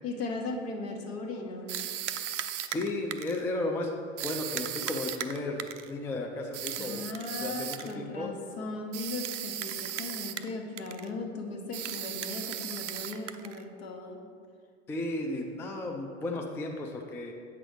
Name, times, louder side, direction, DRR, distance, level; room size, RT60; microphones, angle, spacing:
voice 1, 0.0-1.7 6.7-14.2, left 3 dB, 55° left, 3 dB, 1.1 m, -37 dB
sound 1, 1.7-3.4 4.2-5.9 6.5-7.9 8.9-10.5 10.8-11.1 11.7-13.6, right 11 dB, 75° right, 0.5 m, -36 dB
voice 2, 2.4-3.9 4.2-7.0 7.4-8.3 14.9-17.3, left 2 dB, 5° left, 2 dB, 0.4 m, -34 dB
8.2 x 6.0 x 3.3 m, 2.1 s
figure-of-eight pair, 80°, 37 cm